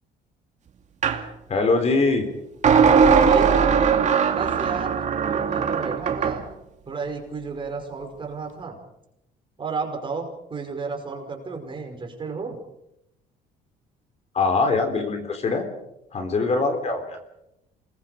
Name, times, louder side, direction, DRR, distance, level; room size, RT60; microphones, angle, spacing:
sound 1, 1.0-1.2 2.6-6.4, right 6 dB, 45° right, 2.4 m, -19 dB
voice 1, 1.5-2.3 14.3-15.7 16.1-17.2, left 3 dB, 40° left, 6 dB, 3.7 m, -22 dB
voice 2, 3.0-3.6 4.2-6.4 6.9-8.8 9.6-12.6, right 4 dB, 30° right, 3 dB, 5.5 m, -33 dB
28.0 x 21.0 x 5.2 m, 0.85 s
cardioid pair, 110°, 17 cm